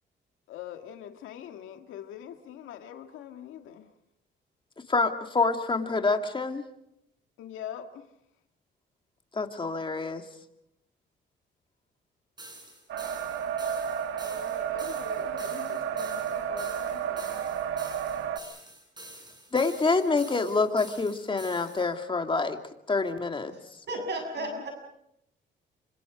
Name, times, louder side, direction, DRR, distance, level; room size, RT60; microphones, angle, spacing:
voice 1, 0.5-3.9 7.4-8.1 14.2-17.4 24.4-24.7, left 10 dB, 90° left, 6 dB, 2.0 m, -43 dB
voice 2, 4.9-6.6 9.3-10.2 19.5-22.6 22.9-23.5, left 3 dB, 25° left, 5 dB, 2.4 m, -26 dB
sound 1, 12.4-21.9, right 1 dB, 20° right, 7.4 m, -48 dB
sound 2, 12.9-18.4, right 8 dB, 80° right, 1.6 m, -32 dB
voice 3, 23.9-24.7, right 1 dB, 60° right, 3 dB, 7.2 m, -33 dB
27.5 x 25.0 x 5.1 m, 0.79 s
cardioid pair, 90°, 20 cm